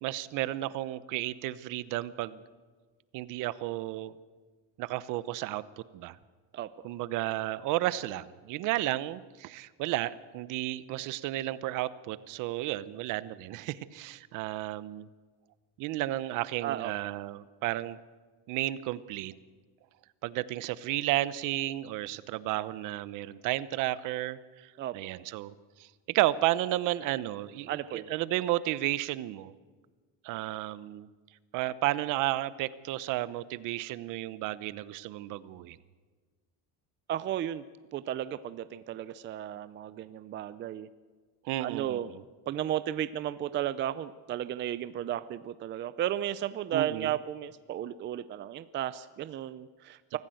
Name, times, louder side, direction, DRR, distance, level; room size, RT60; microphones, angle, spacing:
voice 1, 0.0-2.4 3.1-4.1 4.8-5.6 5.9-6.2 6.8-15.1 15.8-18.0 18.5-19.4 20.2-25.5 25.8-29.5 30.2-31.1 31.5-35.8 41.4-42.2 46.7-47.2, right 16 dB, 60° right, 17 dB, 1.0 m, -32 dB
voice 2, 16.6-16.9 24.8-24.9 27.7-28.1 37.1-37.6 37.9-40.9 41.6-42.1 42.5-50.2, right 11 dB, 30° right, 14 dB, 0.5 m, -34 dB
24.0 x 15.0 x 7.8 m, 1.4 s
cardioid pair, 155°, 35 cm